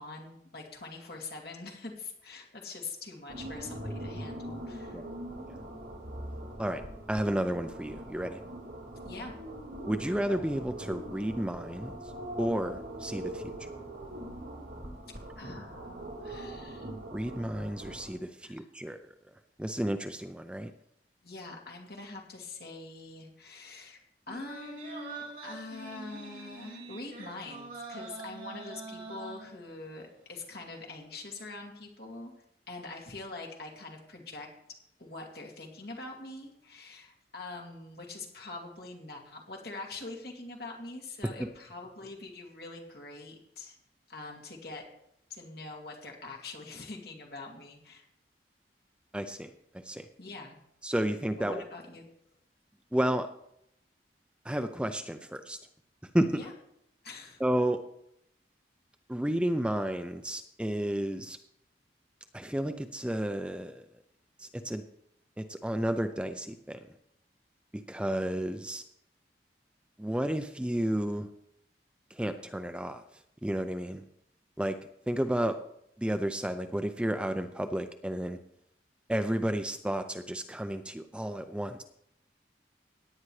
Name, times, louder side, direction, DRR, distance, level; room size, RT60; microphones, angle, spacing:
voice 1, 0.0-5.0 9.0-9.3 15.4-16.9 18.4-18.7 21.2-24.0 24.3-32.3 32.7-43.8 44.1-44.9 45.3-48.1 50.2-50.6 51.4-52.1 56.3-56.5 57.0-57.4, left 3 dB, 60° left, 0 dB, 2.5 m, -44 dB
sound 1, 3.3-18.1, right 1 dB, 75° right, 2.8 m, -42 dB
voice 2, 7.1-8.4 9.8-11.9 12.4-13.7 17.1-19.0 19.6-20.7 49.1-50.1 50.8-51.6 52.9-53.3 54.4-55.6 56.1-56.3 57.4-57.8 59.1-61.4 62.3-63.8 64.4-64.8 65.4-66.8 67.7-68.8 70.0-71.3 72.1-73.0 73.4-74.0 74.6-74.8 75.1-75.6 76.0-78.4 79.1-81.8, right 1 dB, 5° right, 7 dB, 0.4 m, -32 dB
sound 2, 24.3-29.9 30.3-30.4, right 3 dB, 45° right, 3.3 m, -44 dB
17.0 x 9.5 x 3.2 m, 0.76 s
head